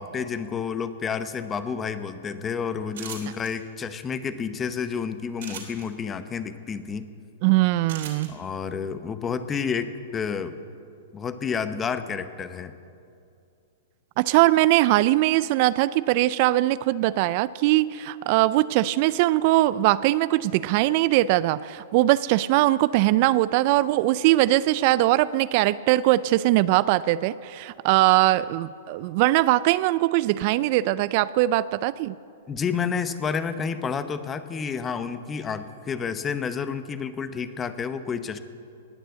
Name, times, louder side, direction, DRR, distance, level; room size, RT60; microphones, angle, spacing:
voice 1, 0.0-7.1 8.3-10.6 11.1-12.7 32.5-38.4, left 6 dB, 20° left, 11 dB, 0.9 m, -30 dB
sound 1, 2.9-3.5 5.4-5.8 7.9-8.3, right 8 dB, 70° right, 2.9 m, -38 dB
voice 2, 7.4-8.3 14.2-32.1, right 16 dB, 50° right, 17 dB, 0.3 m, -21 dB
19.0 x 6.7 x 7.9 m, 2.5 s
hypercardioid pair, 120°, 0 cm